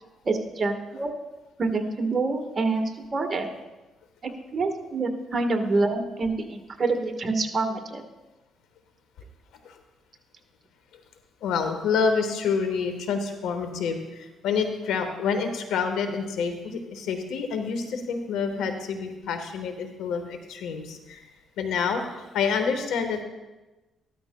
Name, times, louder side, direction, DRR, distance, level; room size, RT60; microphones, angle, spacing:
voice 1, 0.2-1.1 1.6-3.5 4.5-8.0, right 3 dB, 40° right, 4 dB, 1.3 m, -26 dB
voice 2, 11.4-14.0 14.4-21.2 21.6-22.0 22.3-23.2, left 5 dB, 85° left, 7 dB, 1.1 m, -27 dB
13.5 x 13.0 x 2.2 m, 1.1 s
cardioid pair, 90°, 0 cm